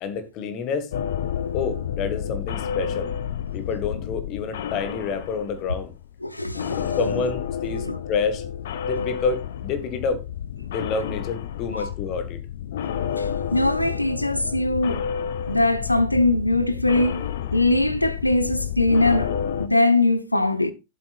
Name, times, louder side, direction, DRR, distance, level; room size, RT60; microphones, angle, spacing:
voice 1, 0.0-0.9 1.5-3.1 3.5-5.9 6.8-8.4 8.8-10.2 10.7-12.4, left 5 dB, 40° left, 1.7 m, -28 dB
sound 1, 0.9-6.2 6.5-19.7, left 8 dB, 60° left, 0.9 m, -30 dB
voice 2, 6.2-7.1 7.8-8.0 11.7-11.9 13.2-15.1 15.5-17.3 17.5-19.3 19.6-20.7, left 2 dB, 85° left, 0.8 m, -21 dB
15.5 x 7.6 x 2.4 m
figure-of-eight pair, 90°, 0 cm